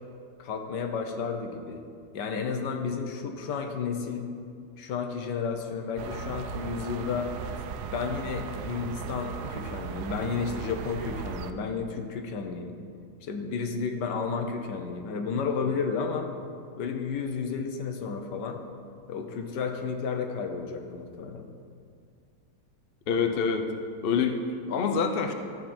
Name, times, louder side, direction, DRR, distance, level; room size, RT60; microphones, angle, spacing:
voice 1, 0.4-1.8 2.1-4.2 4.8-7.3 7.9-12.8 13.2-16.3 16.8-18.6 19.1-21.4, left 5 dB, 85° left, 5 dB, 1.6 m, -32 dB
sound 1, 6.0-11.5, right 7 dB, 75° right, 1.1 m, -37 dB
voice 2, 23.1-23.7 24.0-25.3, left 5 dB, 50° left, 5 dB, 0.7 m, -26 dB
13.5 x 8.0 x 4.4 m, 2.3 s
omnidirectional pair, 1.8 m